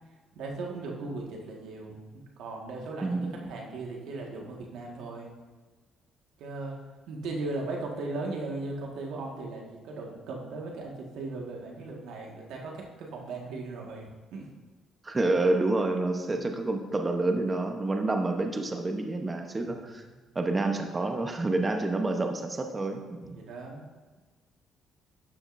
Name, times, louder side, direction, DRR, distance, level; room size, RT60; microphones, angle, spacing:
voice 1, 0.3-2.0 2.4-5.3 6.4-6.7 7.1-14.1 14.3-14.5 16.3-16.5 19.6-20.3 23.3-23.9, right 3 dB, 80° right, 0 dB, 1.6 m, -38 dB
voice 2, 3.0-3.5 15.0-19.9 20.3-23.2, right 2 dB, 25° right, 4 dB, 0.8 m, -28 dB
12.0 x 7.1 x 2.6 m, 1.4 s
supercardioid pair, 75°, 0 cm